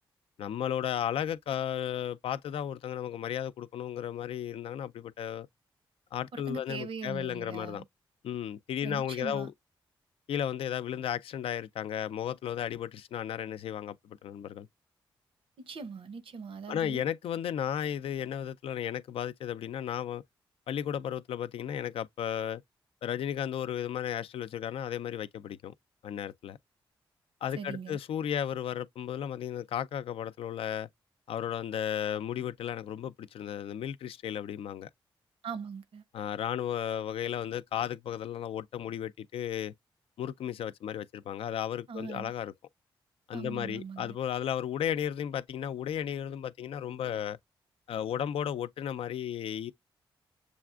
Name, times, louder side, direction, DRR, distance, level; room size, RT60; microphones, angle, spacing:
voice 1, 0.4-5.5 6.1-7.8 8.2-9.5 10.3-14.7 16.7-20.2 20.7-22.6 23.0-25.7 26.0-26.6 27.4-30.9 31.3-34.9 36.1-39.7 40.2-42.5 43.3-47.4 47.9-49.7, left 9 dB, 75° left, 0.4 m, -34 dB
voice 2, 6.3-7.8 8.8-9.5 15.6-17.0 27.6-28.0 35.4-36.0 41.9-42.3 43.3-44.2, right 5 dB, 70° right, 0.7 m, -41 dB
6.9 x 2.4 x 2.3 m
supercardioid pair, 50°, 10 cm